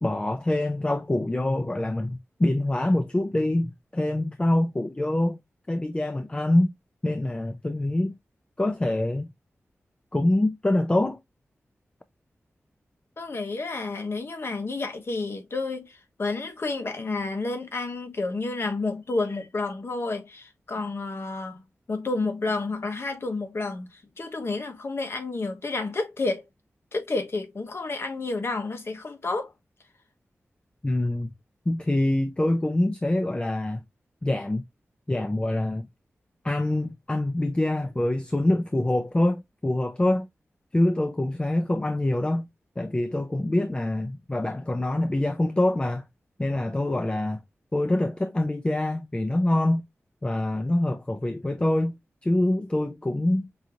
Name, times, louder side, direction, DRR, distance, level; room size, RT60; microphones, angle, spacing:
voice 1, 0.0-5.4 5.7-6.7 7.0-8.1 8.6-9.3 10.1-11.2 30.8-31.3 31.7-33.8 34.2-34.6 35.1-35.9 36.4-40.3 40.7-42.5 42.8-46.1 46.4-47.4 47.7-49.8 50.2-52.0 52.2-53.5, left 1 dB, 20° left, 0.5 m, -25 dB
voice 2, 13.2-21.6 21.9-26.5 26.9-29.5, left 3 dB, 55° left, 1.1 m, -30 dB
5.4 x 2.8 x 2.5 m
cardioid pair, 60°, 5 cm